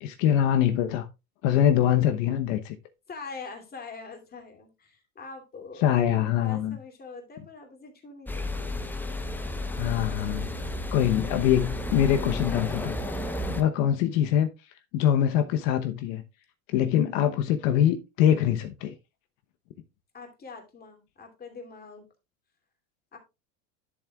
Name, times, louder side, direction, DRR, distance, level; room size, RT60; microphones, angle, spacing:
voice 1, 0.0-1.1 1.4-2.7 5.8-6.8 9.7-10.5 10.9-12.9 13.5-14.5 14.9-16.2 16.7-18.9, left 10 dB, 70° left, 1.0 m, -24 dB
voice 2, 3.1-8.8 20.1-22.1 23.1-23.2, left 4 dB, 25° left, 2.7 m, -44 dB
sound 1, 8.3-13.6, left 1 dB, 5° left, 0.8 m, -32 dB
11.5 x 7.3 x 2.3 m
supercardioid pair, 125°, 40 cm